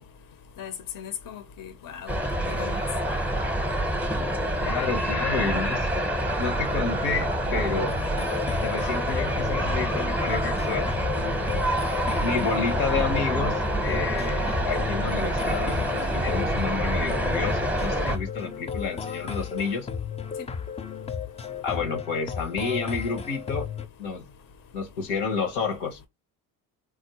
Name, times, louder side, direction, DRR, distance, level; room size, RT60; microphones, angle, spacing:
voice 1, 0.6-2.2 2.5-2.8, left 8 dB, 50° left, 0.7 m, -38 dB
sound 1, 2.1-18.2, right 1 dB, 5° right, 0.8 m, -27 dB
voice 2, 4.6-5.9 6.4-7.9 8.6-10.9 12.2-19.9 21.6-23.7 24.0-24.2 24.7-26.0, left 5 dB, 80° left, 1.0 m, -30 dB
sound 2, 7.4-23.9, left 7 dB, 15° left, 0.3 m, -34 dB
3.6 x 2.0 x 2.8 m
hypercardioid pair, 60°, 44 cm